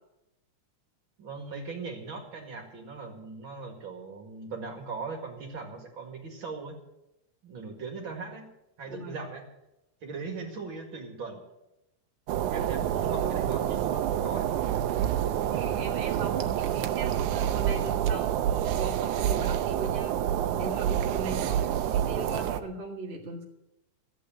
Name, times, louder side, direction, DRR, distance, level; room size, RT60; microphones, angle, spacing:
voice 1, 1.2-6.8 7.4-8.5 8.8-9.4 10.0-11.5 12.5-14.5 21.3-21.6, right 4 dB, 45° right, 2 dB, 2.6 m, -39 dB
voice 2, 8.8-9.2 12.5-13.4 15.4-20.2 20.5-23.4, right 2 dB, 25° right, -1 dB, 1.5 m, -39 dB
sound 1, 12.3-22.6, right 10 dB, 85° right, 2.2 m, -28 dB
14.5 x 8.4 x 7.7 m, 0.91 s
omnidirectional pair, 3.5 m